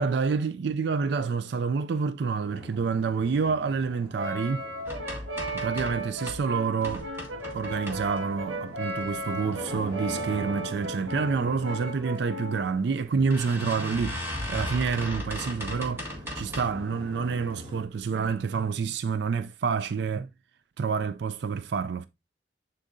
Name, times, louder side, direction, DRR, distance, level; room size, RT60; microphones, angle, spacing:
voice 1, 0.0-4.7 5.6-7.1 7.5-20.3 20.8-22.1, right 5 dB, 60° right, 0.3 m, -28 dB
sound 1, 2.4-17.8, equal, 25° right, 2.3 m, -45 dB
Brass instrument, 4.2-12.7, right 1 dB, 75° right, 1.6 m, -35 dB
sound 2, 4.9-6.5 6.8-8.4 8.9-9.5 10.0-10.4 10.6-10.7 11.0-11.1 12.2-12.3 12.7-12.8 13.3-16.9 17.3-17.7 18.2-18.3 18.7-18.8, left 1 dB, 10° right, 1.8 m, -37 dB
10.0 x 3.8 x 2.6 m
head